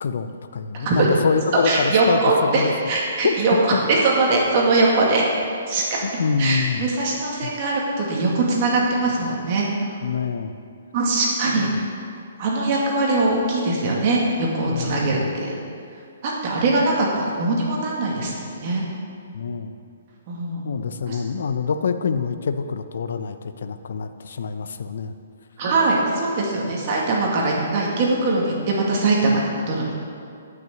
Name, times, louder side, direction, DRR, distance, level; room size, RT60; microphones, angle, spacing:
voice 1, 0.0-2.7 3.2-3.3 3.7-4.1 6.0-6.9 7.4-7.5 10.0-10.6 11.5-11.7 14.7-15.4 19.3-19.7 20.6-25.1, left 5 dB, 70° left, 9 dB, 0.7 m, -26 dB
voice 2, 0.7-1.1 1.6-3.5 3.9-5.3 5.7-6.0 6.4-9.7 10.9-11.9 12.4-15.6 16.2-18.8 20.3-20.6 21.1-21.2 25.6-30.0, right 2 dB, 40° right, -3 dB, 2.1 m, -21 dB
10.5 x 6.2 x 7.7 m, 2.4 s
hypercardioid pair, 155°, 0 cm